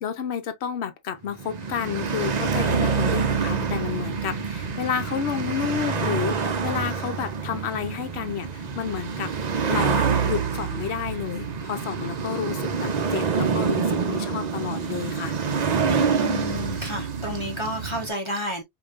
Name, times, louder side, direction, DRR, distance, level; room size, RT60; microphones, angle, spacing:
voice 1, 0.0-9.3 9.7-15.4, left 8 dB, 65° left, 1.0 m, -30 dB
sound 1, 1.3-18.1, right 5 dB, 45° right, 0.6 m, -26 dB
voice 2, 16.2-18.6, left 1 dB, 25° left, 0.9 m, -31 dB
5.0 x 2.6 x 2.4 m
omnidirectional pair, 1.2 m